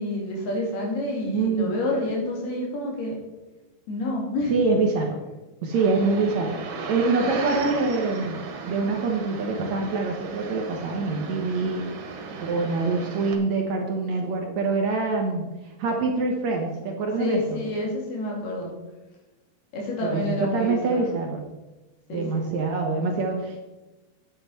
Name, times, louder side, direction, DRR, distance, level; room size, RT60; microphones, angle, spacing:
voice 1, 0.0-3.1 3.9-4.5 17.2-18.7 19.7-21.0 22.1-22.4, left 1 dB, 85° left, -1 dB, 4.8 m, -28 dB
voice 2, 1.3-1.7 4.5-5.2 5.6-11.8 12.4-17.6 20.0-21.4 22.1-23.6, right 3 dB, 60° right, 1 dB, 2.0 m, -25 dB
sound 1, 5.7-13.4, right 4 dB, 80° right, 3.4 m, -35 dB
9.8 x 8.6 x 5.7 m, 1.1 s
omnidirectional pair, 4.4 m